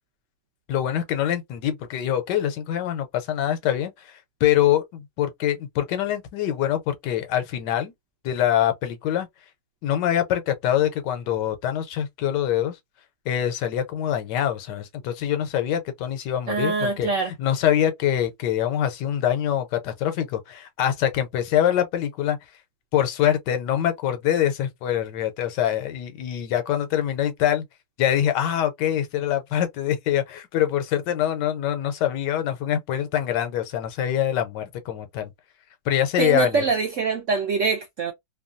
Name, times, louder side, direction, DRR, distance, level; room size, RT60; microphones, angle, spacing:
voice 1, 0.7-4.1 4.4-7.9 8.2-9.3 9.8-12.8 13.3-22.4 22.9-27.6 28.0-35.3 35.9-36.6, left 10 dB, 85° left, 1.2 m, -24 dB
voice 2, 16.5-17.3 36.2-38.1, right 5 dB, 75° right, 0.7 m, -24 dB
2.8 x 2.2 x 2.5 m
omnidirectional pair, 1.9 m